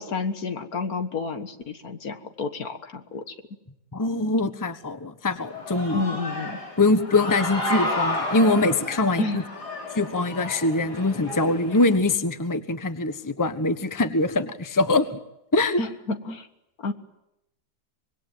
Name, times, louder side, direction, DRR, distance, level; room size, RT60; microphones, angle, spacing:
voice 1, 0.0-3.3 5.9-6.6 9.2-9.4 15.8-16.5 16.8-16.9, left 3 dB, 65° left, 8 dB, 2.0 m, -30 dB
voice 2, 3.9-6.0 6.8-9.4 9.9-15.2 15.5-15.8, left 2 dB, 15° left, 10 dB, 1.1 m, -23 dB
Human voice / Cheering, 5.4-12.0, left 1 dB, 90° left, 4.9 m, -31 dB
25.5 x 21.5 x 9.2 m, 0.86 s
omnidirectional pair, 1.7 m